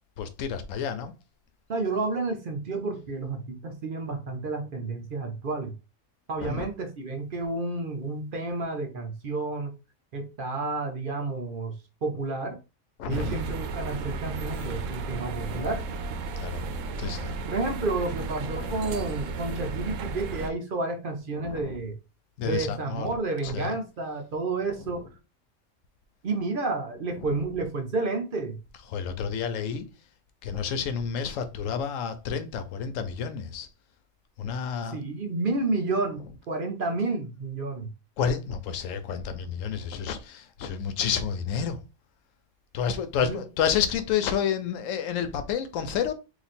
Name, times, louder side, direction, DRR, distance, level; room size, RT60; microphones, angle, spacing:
voice 1, 0.2-1.1 6.4-6.7 13.0-13.4 15.3-15.7 16.3-16.7 17.0-17.3 18.4-18.9 21.3-21.9 22.4-23.1 23.4-23.8 24.7-25.1 27.1-27.3 28.9-29.9 30.4-33.7 34.4-35.0 38.2-41.8 42.7-46.1, left 7 dB, 85° left, 1.0 m, -30 dB
voice 2, 1.7-5.7 6.3-9.7 10.1-11.7 12.0-12.6 13.1-15.8 17.5-22.0 22.4-25.1 26.2-28.6 34.9-37.9 43.2-43.4, right 3 dB, 50° right, 0.8 m, -30 dB
sound 1, 13.1-20.5, right 3 dB, 80° right, 0.9 m, -34 dB
3.0 x 2.4 x 4.1 m
omnidirectional pair, 1.3 m